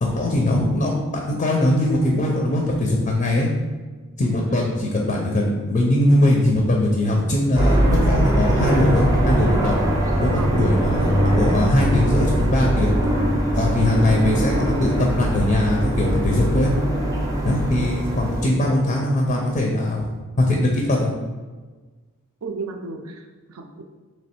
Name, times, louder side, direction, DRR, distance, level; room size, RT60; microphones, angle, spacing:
voice 1, 0.0-3.5 4.2-9.8 10.2-12.9 13.5-16.7 17.4-20.1 20.4-21.1, left 1 dB, 35° left, 0 dB, 0.5 m, -21 dB
sound 1, 7.6-18.5, right 1 dB, 15° right, 0.6 m, -21 dB
voice 2, 10.2-10.6 13.9-14.2 17.8-18.0 22.4-23.8, right 3 dB, 75° right, 5 dB, 0.5 m, -34 dB
3.2 x 3.1 x 4.3 m, 1.3 s
head